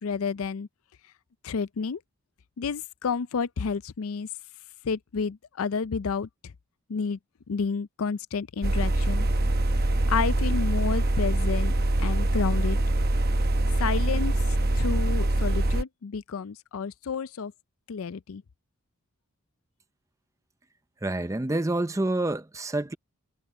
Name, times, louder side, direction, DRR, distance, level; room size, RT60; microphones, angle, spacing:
voice 1, 0.0-0.7 1.4-2.0 2.6-4.3 4.8-6.3 6.9-7.2 7.5-9.3 10.1-11.7 12.0-12.8 13.8-14.4 14.8-17.5 17.9-18.4, left 5 dB, 70° left, 0.5 m, -30 dB
sound 1, 8.6-15.8, right 1 dB, 45° right, 0.9 m, -24 dB
voice 2, 21.0-22.9, right 2 dB, 15° right, 0.5 m, -27 dB
head